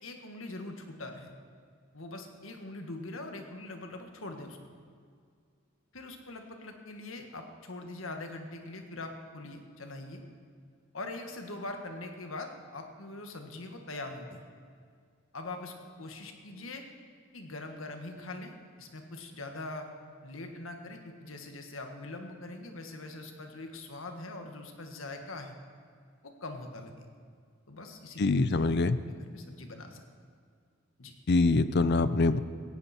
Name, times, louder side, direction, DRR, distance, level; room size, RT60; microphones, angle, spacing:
voice 1, 0.0-1.3 1.9-4.6 5.9-10.2 10.9-14.4 15.3-15.7 16.0-16.8 17.3-19.9 20.2-25.5 26.2-27.1 27.7-28.2 28.6-28.7 29.1-30.0 31.0-31.1, left 2 dB, 70° left, 4 dB, 1.7 m, -42 dB
voice 2, 28.2-29.0 31.3-32.4, left 3 dB, 50° left, 14 dB, 0.5 m, -24 dB
17.5 x 15.0 x 4.4 m, 2.1 s
head